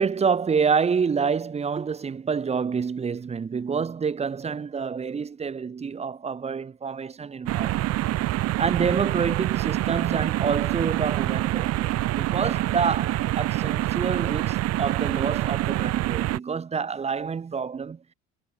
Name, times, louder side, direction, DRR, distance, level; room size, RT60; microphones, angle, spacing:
voice 1, 0.0-7.9 8.6-18.0, right 6 dB, 20° right, 1.2 m, -27 dB
sound 1, 7.5-16.4, right 16 dB, 50° right, 1.1 m, -26 dB
cardioid pair, 135°, 33 cm